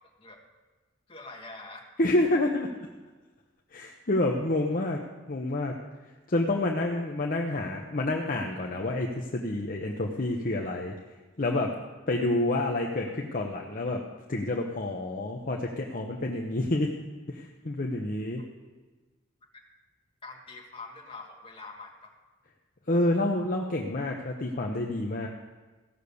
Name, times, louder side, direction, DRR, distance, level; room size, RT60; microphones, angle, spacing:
voice 1, 1.1-1.8 20.2-22.1, left 3 dB, 30° left, 0 dB, 1.7 m, -44 dB
voice 2, 2.0-2.7 3.7-5.0 5.3-5.7 6.3-10.9 11.4-11.8 12.1-14.0 14.3-17.0 17.3-18.4 22.9-25.3, left 2 dB, 45° left, 0 dB, 0.9 m, -28 dB
15.5 x 6.5 x 6.9 m, 1.3 s
head